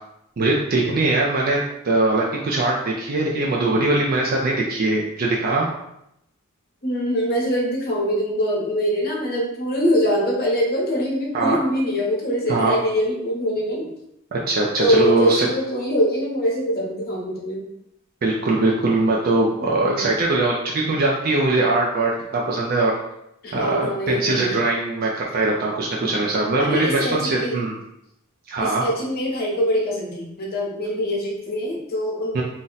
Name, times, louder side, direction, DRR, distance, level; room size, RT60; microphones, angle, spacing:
voice 1, 0.4-5.7 11.3-11.6 12.5-12.8 14.3-15.5 18.2-23.0 23.5-27.8 28.5-28.8 32.3-32.4, right 2 dB, 45° right, -3 dB, 0.4 m, -21 dB
voice 2, 6.8-13.9 14.8-17.7 19.6-20.1 23.4-24.5 26.6-27.6 28.6-32.4, equal, 45° left, -2 dB, 0.8 m, -23 dB
2.6 x 2.1 x 3.9 m, 0.81 s
head